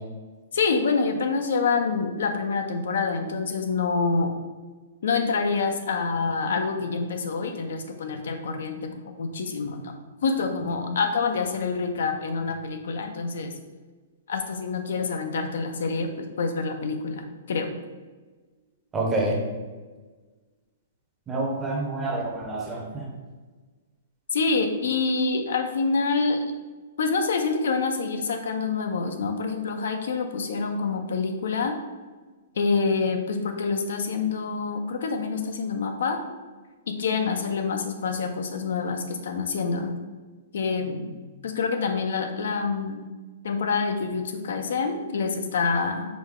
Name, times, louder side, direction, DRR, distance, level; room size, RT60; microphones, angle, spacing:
voice 1, 0.5-4.3 5.0-9.9 10.2-13.5 14.3-17.7 24.3-26.4 27.0-31.7 32.6-36.2 36.9-39.9 40.5-41.2 41.4-43.0 43.4-46.1, left 4 dB, 75° left, 6 dB, 0.5 m, -26 dB
voice 2, 18.9-19.3 21.3-23.1, right 2 dB, 15° right, -1 dB, 0.7 m, -27 dB
5.0 x 2.1 x 3.6 m, 1.4 s
hypercardioid pair, 160°, 0 cm